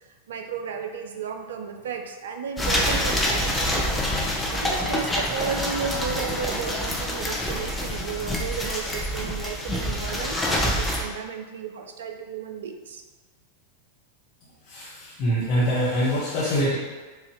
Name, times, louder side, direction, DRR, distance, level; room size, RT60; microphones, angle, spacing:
voice 1, 0.3-4.0 4.5-13.0, right 6 dB, 60° right, 5 dB, 0.4 m, -33 dB
sound 1, 2.6-11.0, left 1 dB, 5° left, 0.6 m, -26 dB
voice 2, 14.7-16.8, equal, 40° left, -8 dB, 0.8 m, -24 dB
4.7 x 2.4 x 3.0 m, 1.3 s
figure-of-eight pair, 90°, 0 cm